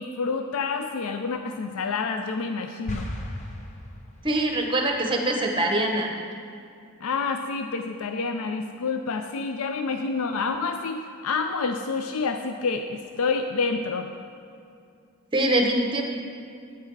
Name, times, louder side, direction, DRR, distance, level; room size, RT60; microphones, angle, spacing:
voice 1, 0.0-3.1 7.0-14.1, left 4 dB, 75° left, 6 dB, 0.4 m, -28 dB
sound 1, 2.9-4.5, left 1 dB, 35° left, 0.7 m, -35 dB
voice 2, 4.2-6.1 15.3-16.0, right 1 dB, 20° right, 2 dB, 0.8 m, -23 dB
8.9 x 5.7 x 4.6 m, 2.5 s
head